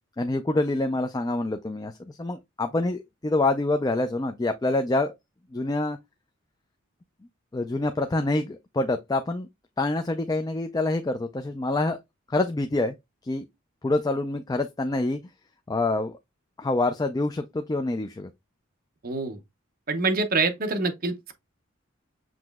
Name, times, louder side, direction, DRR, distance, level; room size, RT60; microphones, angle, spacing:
voice 1, 0.2-5.1 5.5-6.0 7.5-9.5 9.8-12.0 12.3-12.9 13.2-13.4 13.8-15.2 15.7-16.2 16.6-18.3, left 2 dB, 20° left, 0.4 m, -26 dB
voice 2, 19.0-19.4 19.9-21.3, right 3 dB, 45° right, 0.8 m, -26 dB
7.5 x 3.0 x 2.3 m
head